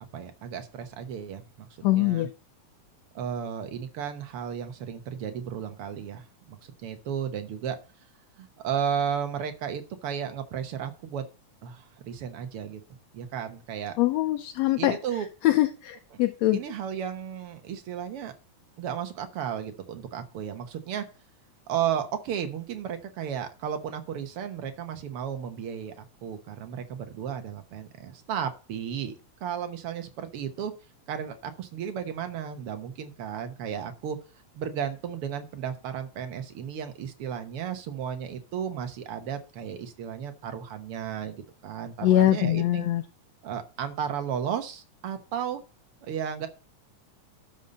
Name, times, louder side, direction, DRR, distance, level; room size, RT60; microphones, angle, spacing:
voice 1, 0.1-2.3 3.1-7.8 8.4-11.2 11.6-12.8 13.1-14.0 14.8-15.3 16.1-16.2 16.5-18.3 18.8-21.0 21.7-29.1 29.4-30.7 31.1-34.2 34.6-42.9 43.4-45.6 46.0-46.5, right 8 dB, 60° right, 7 dB, 1.7 m, -34 dB
voice 2, 1.8-2.3 14.0-15.0 15.4-16.6 42.0-43.0, left 14 dB, 75° left, 7 dB, 1.8 m, -23 dB
12.0 x 5.5 x 5.2 m, 0.34 s
omnidirectional pair, 3.5 m